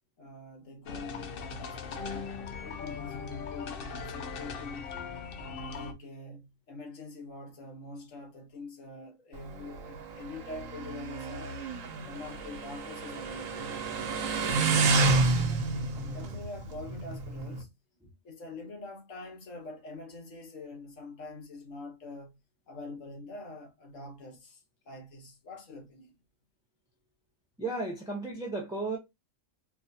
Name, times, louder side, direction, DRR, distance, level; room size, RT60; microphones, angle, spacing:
voice 1, 0.2-4.9 5.4-11.6 12.0-15.4 15.9-17.8 18.0-22.4 22.7-26.1, left 2 dB, 80° left, 1.6 m, -45 dB
sound 1, 0.9-5.9, left 6 dB, 55° left, 0.7 m, -39 dB
Motorcycle, 9.3-17.6, right 3 dB, 90° right, 1.2 m, -30 dB
voice 2, 27.6-29.0, right 2 dB, 5° right, 0.6 m, -34 dB
4.6 x 2.3 x 2.7 m
omnidirectional pair, 1.3 m